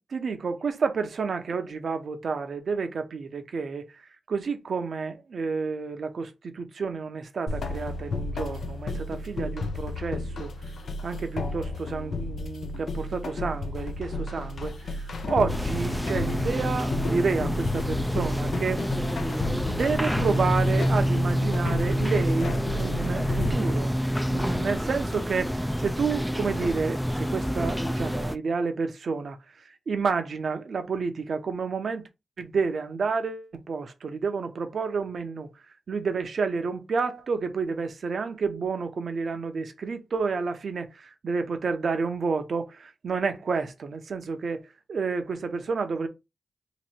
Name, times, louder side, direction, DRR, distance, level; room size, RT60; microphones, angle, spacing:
voice 1, 0.1-4.0 4.3-10.5 11.0-18.8 19.6-24.0 24.3-32.0 32.4-35.5 35.9-46.1, right 5 dB, 70° right, 0.7 m, -30 dB
sound 1, 7.5-23.5, left 3 dB, 75° left, 0.5 m, -33 dB
sound 2, 15.5-28.4, equal, 5° left, 0.3 m, -27 dB
3.0 x 2.6 x 4.3 m
cardioid pair, 70°, 0 cm